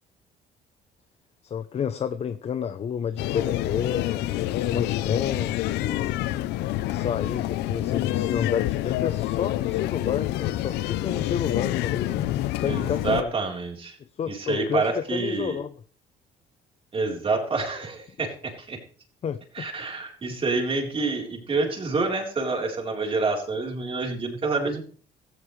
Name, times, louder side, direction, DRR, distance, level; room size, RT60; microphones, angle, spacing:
voice 1, 1.4-6.2 6.8-13.3 14.1-15.7 19.2-19.7, left 7 dB, 40° left, 12 dB, 0.7 m, -30 dB
sound 1, 3.2-13.2, left 15 dB, 90° left, 0.7 m, -27 dB
voice 2, 12.7-14.0 14.3-15.6 16.9-18.8 19.5-24.8, right 3 dB, 35° right, 1 dB, 3.9 m, -27 dB
16.5 x 14.5 x 3.3 m, 0.43 s
cardioid pair, 110°, 17 cm